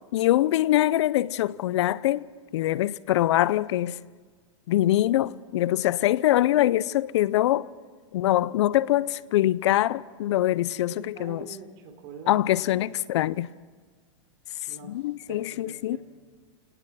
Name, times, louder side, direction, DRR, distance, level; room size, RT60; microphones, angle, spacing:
voice 1, 0.1-2.3 2.5-4.0 4.7-7.7 8.1-11.5 12.3-13.5 14.9-16.0, left 14 dB, 60° left, 0.6 m, -23 dB
voice 2, 10.6-12.6 14.7-15.0 15.3-16.0, right 6 dB, 40° right, 4.0 m, -44 dB
28.0 x 19.0 x 6.2 m
hypercardioid pair, 145°, 16 cm